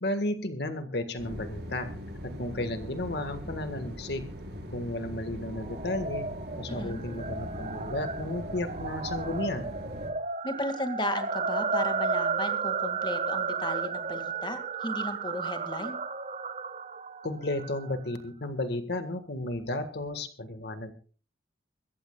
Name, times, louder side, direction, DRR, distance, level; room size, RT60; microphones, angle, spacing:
voice 1, 0.0-1.9 2.4-4.3 4.7-6.3 6.6-9.8 17.2-20.9, left 1 dB, 65° left, 9 dB, 1.7 m, -33 dB
sound 1, 1.2-10.1, equal, 60° right, 4.9 m, -41 dB
sound 2, 5.5-18.0, right 5 dB, 40° right, 0.8 m, -33 dB
voice 2, 6.7-7.1 10.4-16.0, left 2 dB, 25° left, 7 dB, 2.1 m, -35 dB
24.0 x 15.5 x 2.4 m, 0.39 s
head